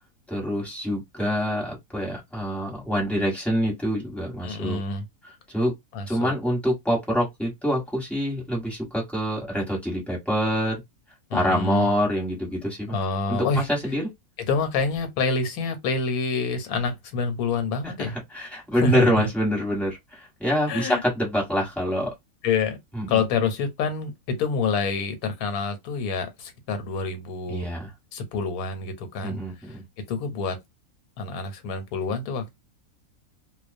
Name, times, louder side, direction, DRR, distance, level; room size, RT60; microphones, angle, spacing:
voice 1, 0.3-4.8 5.5-5.7 6.1-10.8 11.3-13.0 13.3-14.1 17.8-22.1 22.9-23.2 27.5-27.9 29.2-29.8, equal, ahead, 0.9 m, -26 dB
voice 2, 4.4-5.0 5.9-6.3 11.3-11.9 12.9-13.6 14.4-18.1 18.7-19.1 20.7-21.0 22.4-22.8 23.1-27.7 28.1-29.4 30.1-30.6 31.2-32.5, left 4 dB, 90° left, 1.1 m, -27 dB
2.3 x 2.2 x 2.5 m
omnidirectional pair, 1.5 m